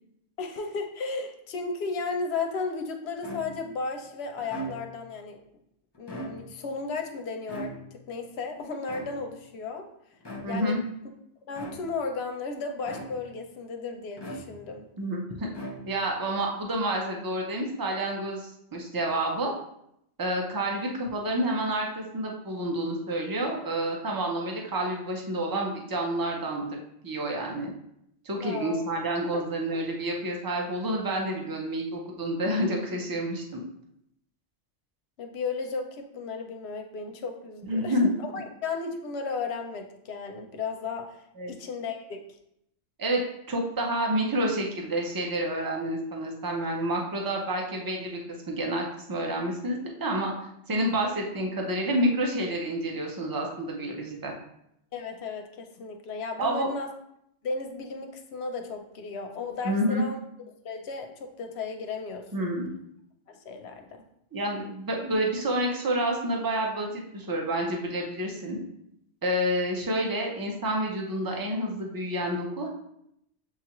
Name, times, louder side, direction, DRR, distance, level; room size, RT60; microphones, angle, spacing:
voice 1, 0.4-5.4 6.0-9.9 10.4-10.8 11.5-14.9 28.4-28.8 29.3-29.4 35.2-42.2 54.9-56.9 57.4-60.2 60.6-62.5 63.3-64.1, left 4 dB, 65° left, 4 dB, 0.8 m, -34 dB
sound 1, 3.2-3.8 4.4-5.1 5.9-6.7 7.5-8.2 8.9-9.5 10.2-10.8 11.5-12.1 12.9-13.5 14.2-14.9 15.5-16.2, right 1 dB, 25° left, 0.6 m, -40 dB
voice 2, 10.4-10.8 15.0-15.5 15.9-19.5 20.2-26.8 27.0-27.7 28.2-33.6 37.6-38.1 41.4-41.5 43.0-43.2 43.5-50.3 50.7-54.3 56.4-56.7 59.6-60.0 62.3-62.7 64.3-68.6 69.2-72.7, right 1 dB, 25° right, 0 dB, 0.5 m, -29 dB
7.0 x 2.4 x 2.9 m, 0.78 s
omnidirectional pair, 1.2 m